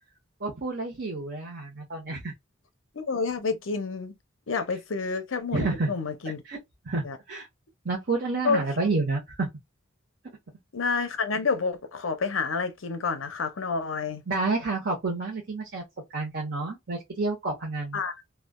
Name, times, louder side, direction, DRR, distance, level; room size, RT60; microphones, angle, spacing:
voice 1, 0.4-2.3 5.5-5.9 6.4-6.6 6.8-7.5 7.8-9.5 14.3-15.8 16.1-18.0, right 3 dB, 60° right, 1.0 m, -29 dB
voice 2, 2.9-4.1 4.5-6.4 7.0-7.2 8.4-8.6 10.7-14.2 17.9-18.2, left 4 dB, 90° left, 0.7 m, -29 dB
3.1 x 2.3 x 2.3 m
head